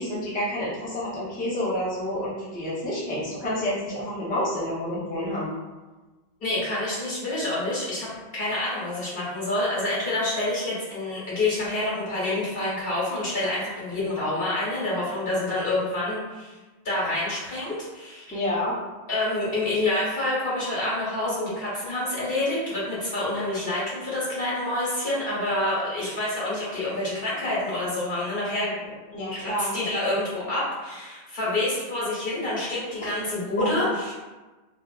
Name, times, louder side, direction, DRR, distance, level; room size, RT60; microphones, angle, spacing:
voice 1, 0.0-5.5 18.3-18.7 29.1-29.7 33.6-33.7, left 1 dB, 10° left, -8 dB, 0.5 m, -29 dB
voice 2, 6.4-8.1 8.3-16.5 16.8-18.4 19.1-28.7 29.3-34.1, left 2 dB, 60° left, -8 dB, 1.5 m, -27 dB
3.3 x 2.5 x 2.4 m, 1.2 s
omnidirectional pair, 1.1 m